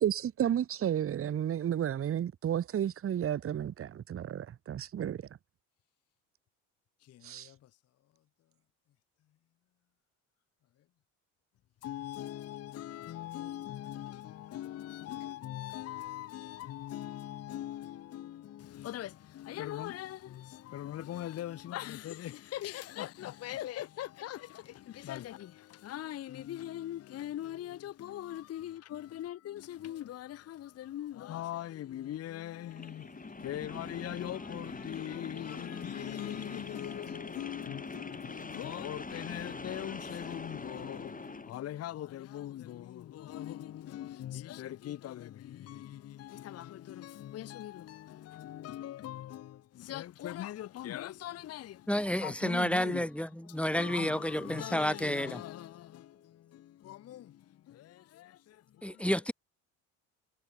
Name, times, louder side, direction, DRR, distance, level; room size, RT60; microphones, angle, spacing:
voice 1, 0.0-5.2 7.2-7.5, right 10 dB, 30° right, 0.8 m, -32 dB
voice 2, 7.1-7.6 11.8-51.9 52.2-53.1 53.7-56.2 56.5-57.4 57.7-58.6, left 12 dB, 35° left, 0.7 m, -41 dB
sound 1, 32.7-41.5, left 3 dB, 20° left, 6.6 m, -43 dB
voice 3, 51.9-55.4 58.8-59.3, equal, 5° left, 1.2 m, -30 dB
hypercardioid pair, 70°, 42 cm